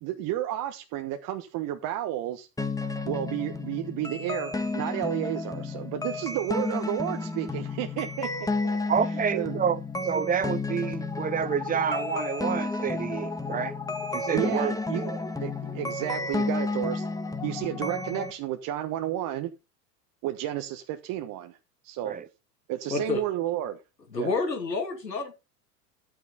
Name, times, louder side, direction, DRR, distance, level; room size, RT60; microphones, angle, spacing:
voice 1, 0.0-2.5 3.1-8.8 9.3-9.6 14.3-15.0 15.4-17.1 17.4-19.5 20.2-21.6 21.8-22.1 22.7-23.8 24.2-24.3, right 12 dB, 40° right, 1.3 m, -32 dB
sound 1, 2.6-18.3, left 3 dB, 5° left, 1.5 m, -31 dB
voice 2, 8.9-13.7 14.1-15.2 22.0-22.3, right 7 dB, 20° right, 0.7 m, -29 dB
voice 3, 22.9-23.2 24.1-25.4, left 4 dB, 90° left, 2.7 m, -29 dB
11.5 x 9.0 x 4.1 m
figure-of-eight pair, 85°, 49 cm